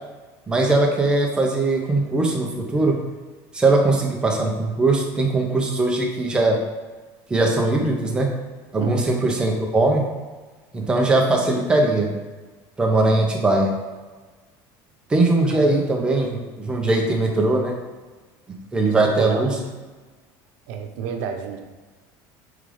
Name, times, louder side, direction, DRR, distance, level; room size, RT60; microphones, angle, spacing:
voice 1, 0.5-3.0 3.5-6.6 7.3-8.3 8.7-10.1 10.7-12.1 12.8-13.7 15.1-17.7 18.7-19.5, right 2 dB, 10° right, 0 dB, 0.8 m, -20 dB
voice 2, 8.8-9.1 15.5-16.0 19.0-19.7 20.7-21.6, right 5 dB, 80° right, 5 dB, 0.8 m, -30 dB
5.3 x 3.9 x 4.9 m, 1.3 s
cardioid pair, 170°, 9 cm